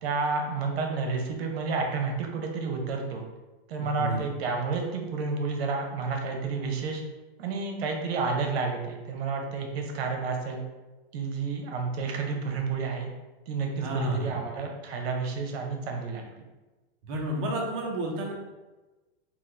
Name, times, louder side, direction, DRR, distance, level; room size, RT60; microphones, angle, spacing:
voice 1, 0.0-3.2 3.7-7.0 7.4-10.6 11.1-13.1 13.5-16.2, right 4 dB, 75° right, 2 dB, 0.7 m, -30 dB
voice 2, 3.8-4.2 13.8-14.3 17.0-18.3, right 1 dB, 25° right, 0 dB, 0.3 m, -30 dB
2.9 x 2.3 x 3.3 m, 1.1 s
supercardioid pair, 165°, 31 cm